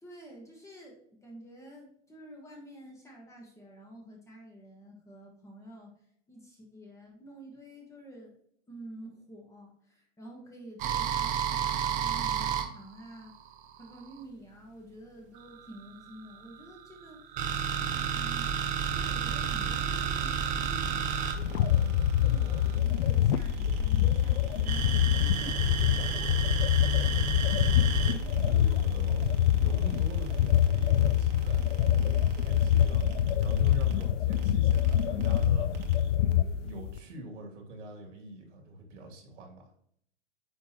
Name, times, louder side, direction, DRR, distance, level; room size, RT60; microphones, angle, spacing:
voice 1, 0.0-5.9 6.3-8.3 8.7-13.4 13.8-17.3 17.7-22.0 22.2-26.1, right 1 dB, 10° left, -1 dB, 1.4 m, -49 dB
sound 1, 10.8-14.2 15.3-22.8 24.7-28.1, right 8 dB, 20° right, 0.6 m, -31 dB
sound 2, 17.9-36.1, right 2 dB, 40° right, 1.5 m, -39 dB
sound 3, 21.3-37.0, left 11 dB, 75° left, 0.6 m, -25 dB
voice 2, 26.8-27.4 28.0-39.7, equal, 75° right, 1 dB, 2.7 m, -44 dB
9.4 x 3.6 x 3.0 m, 0.66 s
hypercardioid pair, 140°, 37 cm